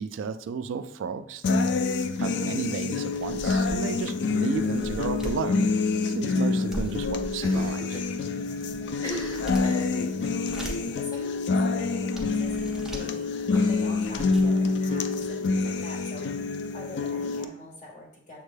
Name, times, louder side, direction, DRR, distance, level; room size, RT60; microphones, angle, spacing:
voice 1, 0.0-1.7 2.2-5.7 6.1-8.0, right 5 dB, 85° right, 11 dB, 0.3 m, -32 dB
sound 1, 1.4-17.4, left 4 dB, 60° left, 0.3 m, -27 dB
sound 2, 3.1-4.0 4.5-5.4 6.7-7.8 8.4-9.9 10.3-11.0 11.6-11.7 12.2-13.1 13.7-13.8 14.0-14.5, equal, 5° right, 0.6 m, -39 dB
Cough, 7.4-8.2 8.4-8.5 8.9-10.5 11.1-11.4 11.7-11.8 12.2-12.3 13.5-14.8, equal, 20° left, 1.0 m, -40 dB
voice 2, 8.8-13.3 13.6-18.4, left 2 dB, 40° left, -2 dB, 1.4 m, -45 dB
7.1 x 3.2 x 2.2 m, 0.69 s
head